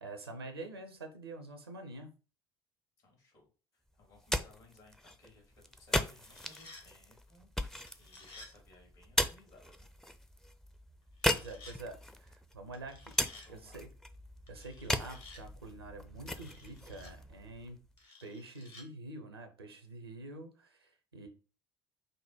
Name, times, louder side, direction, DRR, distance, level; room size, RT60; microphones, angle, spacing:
voice 1, 0.0-2.1 11.3-13.2 13.5-13.9 14.5-17.8 18.2-21.3, right 2 dB, 90° right, 6 dB, 0.7 m, -47 dB
voice 2, 3.0-9.9 13.3-13.8, left 2 dB, 65° left, 0 dB, 2.6 m, -62 dB
sound 1, 4.0-18.0, left 1 dB, 5° left, 0.5 m, -38 dB
sound 2, 6.2-6.9 7.9-8.5 11.2-11.8 12.7-13.5 14.5-15.4 16.3-17.1 18.0-18.9, left 3 dB, 45° left, 1.5 m, -54 dB
5.1 x 2.1 x 4.3 m, 0.34 s
figure-of-eight pair, 55°, 12 cm